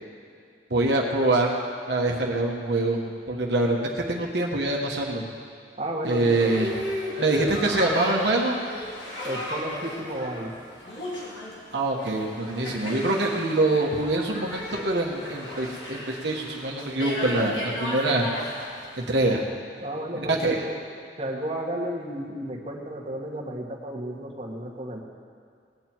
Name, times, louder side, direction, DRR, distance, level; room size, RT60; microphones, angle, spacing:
voice 1, 0.7-1.5 1.9-3.8 4.1-5.2 6.0-6.7 7.2-8.6 11.7-18.3 19.0-19.4 20.1-20.6, right 2 dB, 75° right, -1 dB, 1.4 m, -24 dB
voice 2, 5.8-6.5 9.2-10.5 19.8-20.7 21.2-25.0, right 1 dB, 35° right, -3 dB, 1.6 m, -32 dB
Boat Water vehicle, 6.0-19.2, left 1 dB, 85° left, 3.6 m, -35 dB
18.5 x 9.2 x 4.6 m, 2.2 s
head